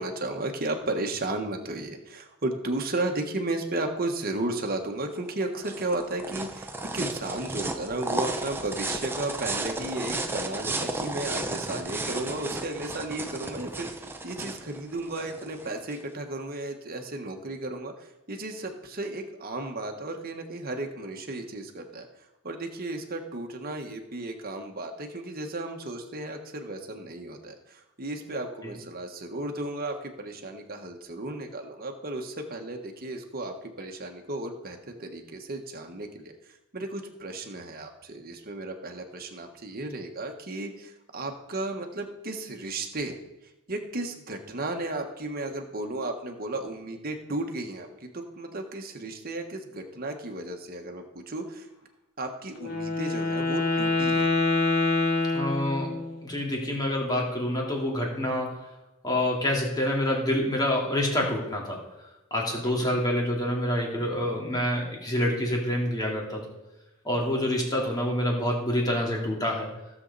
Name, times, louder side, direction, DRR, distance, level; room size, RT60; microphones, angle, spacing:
voice 1, 0.0-22.1 22.4-36.3 36.7-43.1 43.7-51.7 52.2-54.3 62.6-63.0, right 2 dB, 45° right, 4 dB, 1.4 m, -34 dB
sound 1, 5.1-16.0, right 2 dB, 10° right, 0.7 m, -34 dB
Wind instrument woodwind instrument, 52.6-56.2, left 3 dB, 90° left, 2.2 m, -26 dB
voice 2, 55.3-58.7 59.0-61.8 62.3-66.5 67.0-69.7, left 1 dB, 15° left, -1 dB, 2.4 m, -27 dB
16.0 x 7.3 x 4.1 m, 0.98 s
head